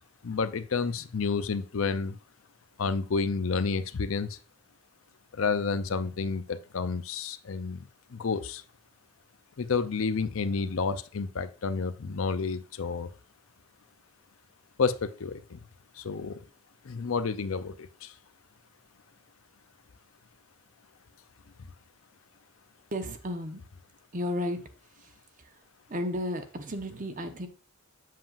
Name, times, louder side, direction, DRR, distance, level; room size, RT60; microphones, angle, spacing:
voice 1, 0.2-2.2 2.8-4.4 5.3-8.6 9.6-13.1 14.8-15.6 16.0-16.4 16.8-18.1, left 5 dB, 70° left, 12 dB, 0.5 m, -30 dB
voice 2, 22.9-23.6 24.1-24.6 24.9-25.6 25.9-27.5, left 1 dB, 40° right, 7 dB, 0.9 m, -34 dB
7.5 x 7.3 x 2.5 m, 0.36 s
head